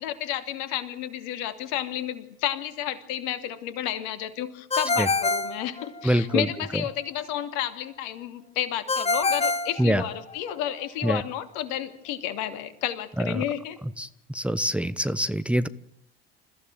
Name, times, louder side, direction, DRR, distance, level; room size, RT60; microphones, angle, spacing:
voice 1, 0.0-13.8, left 11 dB, 65° left, 10 dB, 2.7 m, -31 dB
Ringtone, 4.7-6.4 8.9-10.6, left 3 dB, 20° left, 1.9 m, -26 dB
voice 2, 6.0-6.5 9.8-10.0 11.0-11.2 13.2-13.4 14.0-15.7, equal, 5° right, 15 dB, 1.1 m, -24 dB
28.5 x 15.5 x 9.1 m, 0.75 s
figure-of-eight pair, 60°, 29 cm